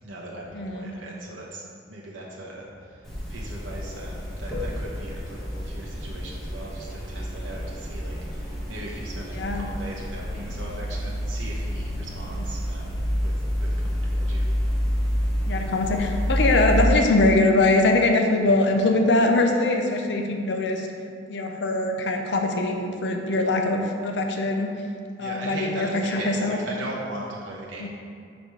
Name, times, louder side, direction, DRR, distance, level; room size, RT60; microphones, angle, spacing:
voice 1, 0.0-1.6 1.9-14.5 25.2-27.9, right 1 dB, 90° right, -3 dB, 0.7 m, -39 dB
voice 2, 0.5-0.9 9.3-9.7 14.9-15.0 15.5-20.9 21.3-24.7 25.2-26.6 27.8-27.9, left 2 dB, 70° left, 4 dB, 0.6 m, -22 dB
sound 1, 3.1-16.8, equal, ahead, 1.3 m, -29 dB
5.1 x 4.2 x 4.5 m, 2.4 s
head